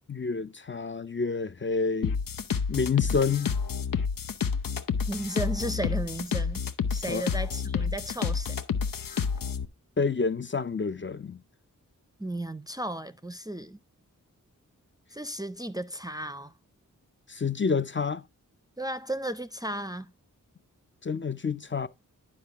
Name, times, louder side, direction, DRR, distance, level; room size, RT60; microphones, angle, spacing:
voice 1, 0.1-2.2 2.7-3.5 7.1-7.2 10.0-11.4 17.3-18.2 21.0-21.9, left 5 dB, 35° left, 0.5 m, -28 dB
sound 1, 2.0-9.6, left 6 dB, 85° left, 0.8 m, -29 dB
voice 2, 5.1-6.6 6.9-8.6 8.9-9.0 12.2-13.8 15.1-16.5 18.8-20.1, right 1 dB, 10° right, 0.5 m, -34 dB
10.0 x 5.7 x 3.5 m
wide cardioid pair, 105°, 33 cm